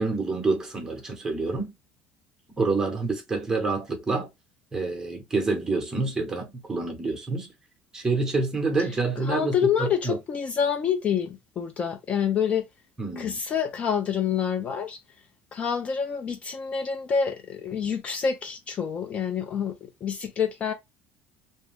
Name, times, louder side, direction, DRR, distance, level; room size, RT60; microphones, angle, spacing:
voice 1, 0.0-1.7 2.6-4.3 4.7-7.5 7.9-10.2 13.0-13.4, right 3 dB, 15° right, 0.9 m, -27 dB
voice 2, 9.2-12.6 13.2-15.0 15.5-20.7, left 7 dB, 30° left, 0.4 m, -27 dB
2.6 x 2.2 x 3.4 m
cardioid pair, 150°, 4 cm